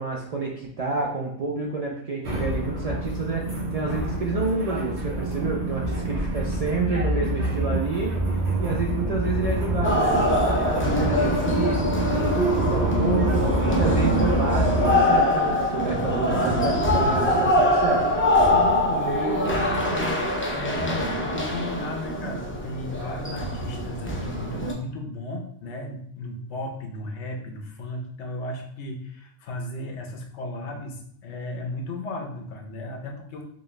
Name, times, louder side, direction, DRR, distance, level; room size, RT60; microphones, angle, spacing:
voice 1, 0.0-13.5 13.7-18.1, right 3 dB, 55° right, -2 dB, 0.4 m, -29 dB
sound 1, 2.2-14.9, right 1 dB, 80° right, 1.2 m, -27 dB
sound 2, 9.8-24.7, left 1 dB, 20° left, 0.3 m, -23 dB
voice 2, 12.8-13.7 18.4-33.4, left 2 dB, 80° left, 2 dB, 1.0 m, -35 dB
4.2 x 2.3 x 3.1 m, 0.65 s
omnidirectional pair, 1.2 m